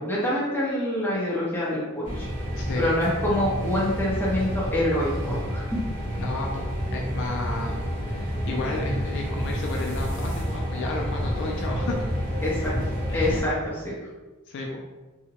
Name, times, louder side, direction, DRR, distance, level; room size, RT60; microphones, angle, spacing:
voice 1, 0.0-2.3 2.8-5.8 12.4-12.7 13.1-13.9, left 1 dB, 10° left, -7 dB, 0.7 m, -26 dB
sound 1, 2.0-13.4, equal, 35° right, 1.1 m, -29 dB
voice 2, 2.5-2.9 6.2-12.1 13.1-13.4 14.5-14.8, left 2 dB, 55° left, 0 dB, 0.3 m, -32 dB
2.7 x 2.1 x 2.8 m, 1.2 s
head